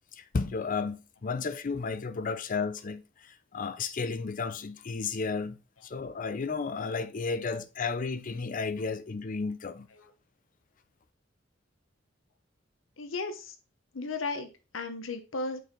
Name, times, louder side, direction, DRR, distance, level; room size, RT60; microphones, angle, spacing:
voice 1, 0.1-9.9, left 4 dB, 45° left, 0.5 m, -33 dB
voice 2, 13.0-13.6 13.9-15.6, left 3 dB, 90° left, 0.8 m, -35 dB
6.2 x 4.5 x 3.8 m
head